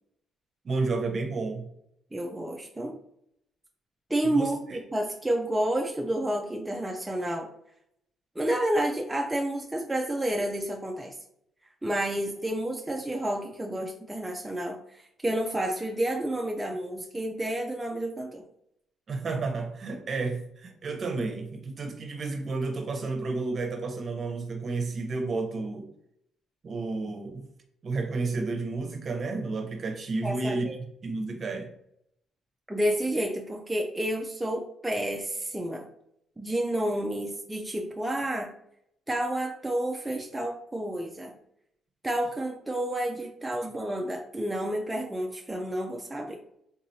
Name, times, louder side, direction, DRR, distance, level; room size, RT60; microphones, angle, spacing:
voice 1, 0.6-1.7 4.2-4.5 19.1-25.9 26.6-27.4 27.8-30.6 31.0-31.7, right 3 dB, 45° right, 4 dB, 0.8 m, -31 dB
voice 2, 2.1-3.0 4.1-7.5 8.4-11.1 11.8-18.4 30.2-30.8 32.7-35.9 36.4-38.5 39.1-41.3 42.0-46.4, right 1 dB, 10° right, 1 dB, 0.4 m, -30 dB
3.7 x 2.9 x 2.7 m, 0.73 s
cardioid pair, 90°, 0 cm